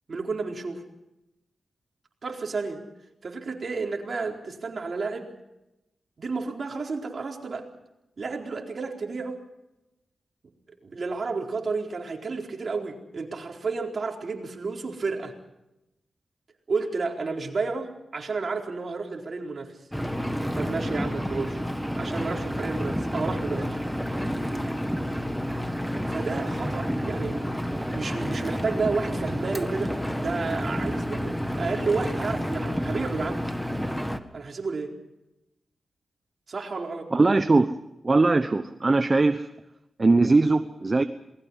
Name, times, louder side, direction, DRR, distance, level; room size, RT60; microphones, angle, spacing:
voice 1, 0.1-0.8 2.2-2.8 3.2-5.3 6.2-7.7 8.2-9.4 10.8-15.3 16.7-19.8 20.5-21.6 22.0-23.8 26.1-27.5 27.9-33.5 34.3-34.9 36.5-37.1, right 4 dB, 50° right, 1 dB, 4.3 m, -31 dB
Engine, 19.9-34.2, equal, ahead, 1.7 m, -29 dB
voice 2, 37.1-37.7 38.0-39.5 40.0-41.0, right 3 dB, 35° right, 9 dB, 1.0 m, -20 dB
27.5 x 20.5 x 5.7 m, 0.91 s
cardioid pair, 80°, 0 cm